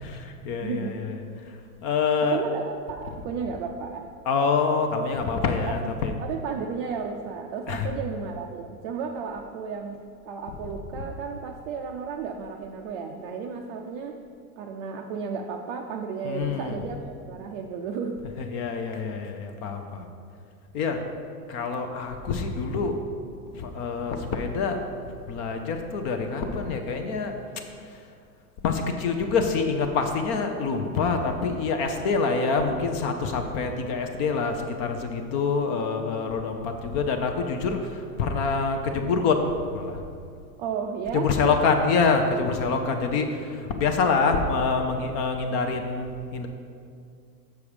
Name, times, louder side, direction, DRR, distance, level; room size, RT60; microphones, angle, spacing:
voice 1, 0.1-1.1 1.8-2.4 4.3-6.1 7.7-7.9 16.2-16.8 18.5-20.1 20.7-21.0 21.5-23.0 23.5-24.8 25.3-27.3 28.6-40.0 41.1-46.5, left 4 dB, 35° left, 5 dB, 0.6 m, -26 dB
voice 2, 0.6-1.0 2.3-4.1 5.7-5.8 6.3-14.2 14.6-18.2 40.6-41.5, right 6 dB, 35° right, 2 dB, 0.5 m, -33 dB
7.0 x 6.1 x 4.9 m, 2.3 s
supercardioid pair, 140°, 46 cm